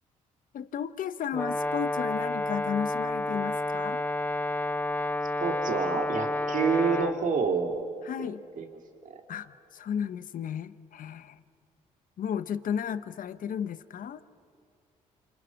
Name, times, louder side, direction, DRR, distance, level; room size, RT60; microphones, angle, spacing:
voice 1, 0.5-4.0 8.0-8.4 9.3-11.4 12.2-14.2, left 8 dB, 65° left, 13 dB, 1.0 m, -34 dB
Brass instrument, 1.3-7.2, left 2 dB, 10° left, 1.2 m, -30 dB
voice 2, 5.4-7.7 8.2-8.3 8.6-8.7 9.0-9.2, right 5 dB, 55° right, 2 dB, 2.6 m, -28 dB
28.0 x 27.5 x 5.9 m, 2.3 s
supercardioid pair, 60°, 15 cm